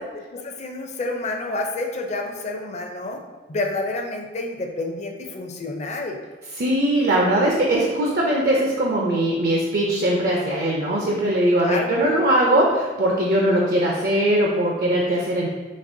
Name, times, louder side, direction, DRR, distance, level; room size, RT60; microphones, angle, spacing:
voice 1, 0.3-3.2 3.5-6.2 11.6-12.0, left 2 dB, 40° left, 3 dB, 0.4 m, -29 dB
voice 2, 6.6-15.5, right 1 dB, 55° right, -2 dB, 0.5 m, -20 dB
5.2 x 2.9 x 2.6 m, 1.4 s
head